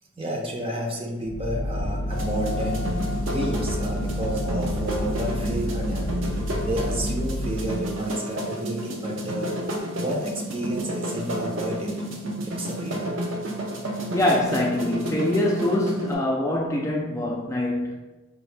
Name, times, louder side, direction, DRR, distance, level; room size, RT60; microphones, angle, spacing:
voice 1, 0.2-2.9 3.2-6.1 6.6-9.6 10.0-11.9 12.4-13.1, right 1 dB, 30° right, 0 dB, 0.6 m, -31 dB
sound 1, 1.3-7.8, left 1 dB, 70° left, 0.5 m, -29 dB
sound 2, 2.1-16.1, equal, 75° right, 0.7 m, -31 dB
voice 2, 14.1-17.9, left 1 dB, 15° left, -2 dB, 0.3 m, -24 dB
4.6 x 2.6 x 3.3 m, 1.1 s
head